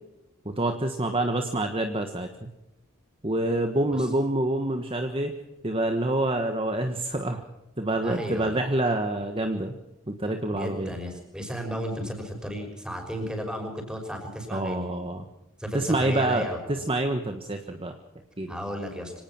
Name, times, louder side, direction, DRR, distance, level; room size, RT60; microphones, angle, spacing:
voice 1, 0.6-2.5 3.2-5.3 5.6-7.4 7.8-9.7 10.1-10.9 14.5-15.2 15.7-17.9 18.4-18.5, right 1 dB, 25° right, 6 dB, 1.4 m, -27 dB
voice 2, 8.0-8.6 10.5-14.9 15.6-16.6 18.5-19.1, equal, 5° right, 2 dB, 5.8 m, -34 dB
25.5 x 18.0 x 6.1 m, 0.95 s
head